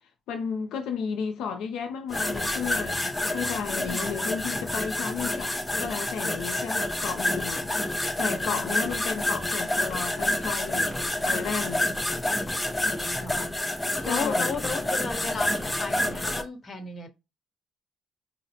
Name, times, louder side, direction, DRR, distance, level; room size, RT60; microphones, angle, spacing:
voice 1, 0.3-5.5 5.8-10.9 11.2-11.9 14.0-14.6, left 6 dB, 85° left, 0.4 m, -33 dB
sound 1, 2.1-16.4, left 1 dB, 10° left, 0.5 m, -28 dB
voice 2, 3.8-4.2 8.4-8.8 13.2-13.5 14.0-17.1, left 3 dB, 35° left, 1.0 m, -34 dB
4.1 x 2.0 x 2.7 m
cardioid pair, 90°, 0 cm